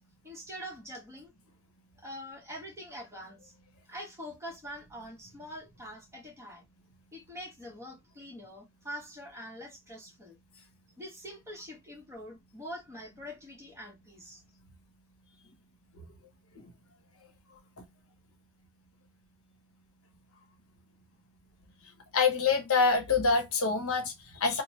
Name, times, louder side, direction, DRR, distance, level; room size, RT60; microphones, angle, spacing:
voice 1, 0.2-1.3 2.0-3.5 3.9-6.6 7.1-10.4 11.0-14.4, equal, 15° right, 1.1 m, -44 dB
voice 2, 22.1-24.6, left 4 dB, 80° left, 0.9 m, -26 dB
3.1 x 2.1 x 3.0 m
head